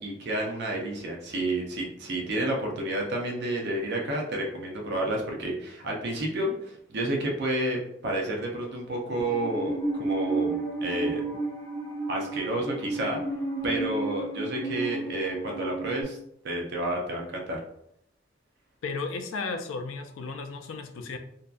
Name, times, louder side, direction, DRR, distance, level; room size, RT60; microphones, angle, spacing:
voice 1, 0.0-7.8 8.0-11.2 12.1-13.2 13.6-16.2 16.4-17.6, right 1 dB, 60° right, 0 dB, 0.5 m, -30 dB
Musical instrument, 9.2-16.0, right 2 dB, 15° left, 0.4 m, -32 dB
voice 2, 18.8-21.2, left 4 dB, 80° left, 7 dB, 0.4 m, -34 dB
2.6 x 2.2 x 2.3 m, 0.73 s
head